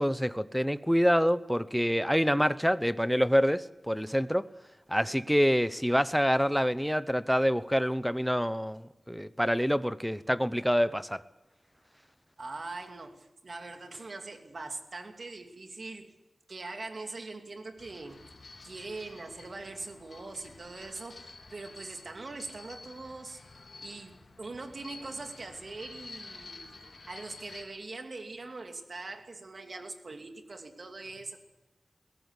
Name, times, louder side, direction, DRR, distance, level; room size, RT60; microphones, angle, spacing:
voice 1, 0.0-4.5 4.9-11.2, equal, ahead, 0.8 m, -26 dB
voice 2, 12.4-16.1 16.5-18.3 18.6-23.4 23.8-31.4, right 3 dB, 60° right, 2.7 m, -42 dB
sound 1, 17.8-27.6, left 3 dB, 75° left, 3.4 m, -50 dB
22.5 x 17.0 x 8.4 m
wide cardioid pair, 85°, 0 cm